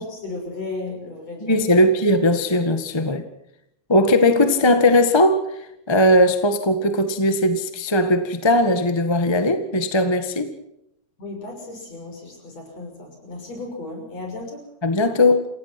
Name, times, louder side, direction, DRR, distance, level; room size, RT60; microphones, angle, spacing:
voice 1, 0.0-2.0 11.2-14.7, left 2 dB, 60° left, 3 dB, 7.6 m, -35 dB
voice 2, 1.4-3.2 3.9-5.4 5.9-10.5 14.8-15.5, left 1 dB, 15° left, 8 dB, 1.1 m, -18 dB
28.5 x 17.5 x 6.0 m, 0.79 s
omnidirectional pair, 3.3 m